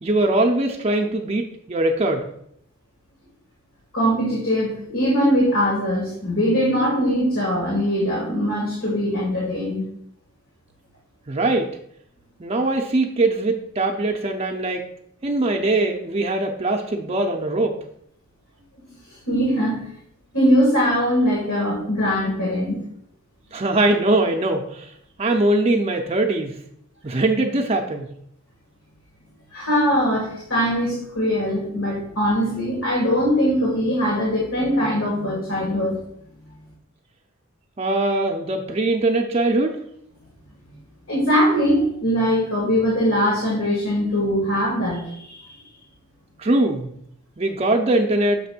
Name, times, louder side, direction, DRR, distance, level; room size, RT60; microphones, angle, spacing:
voice 1, 0.0-2.2 11.3-11.7 12.4-14.8 15.2-17.8 23.5-24.9 25.2-26.6 27.0-28.1 37.8-39.8 46.4-46.9 47.4-48.4, right 2 dB, 30° right, 3 dB, 0.5 m, -21 dB
voice 2, 3.9-9.8 18.9-19.0 19.3-19.8 20.3-22.8 29.5-36.0 40.6-40.8 41.1-45.4, equal, 80° left, -4 dB, 1.8 m, -21 dB
6.6 x 3.1 x 5.9 m, 0.72 s
head